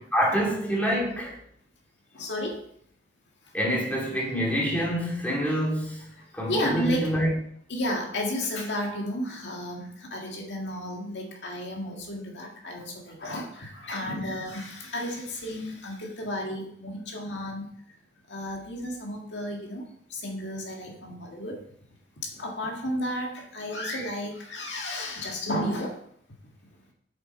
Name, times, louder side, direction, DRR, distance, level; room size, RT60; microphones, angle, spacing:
voice 1, 0.1-1.4 3.5-6.0 6.3-7.3, equal, 10° left, 2.2 m, -26 dB
voice 2, 2.1-2.6 6.2-7.3 7.7-17.7 18.3-21.6 22.2-26.0, left 1 dB, 85° left, 1.9 m, -33 dB
7.7 x 7.1 x 4.4 m
head